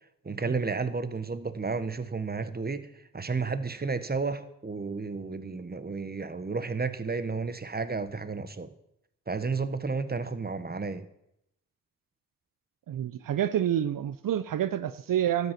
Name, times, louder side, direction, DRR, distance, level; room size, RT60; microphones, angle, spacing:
voice 1, 0.2-2.9 3.1-8.7 9.3-11.1, right 4 dB, 30° right, 1.1 m, -32 dB
voice 2, 12.9-15.5, right 10 dB, 80° right, 0.5 m, -28 dB
12.5 x 8.1 x 5.9 m
cardioid pair, 45°, 33 cm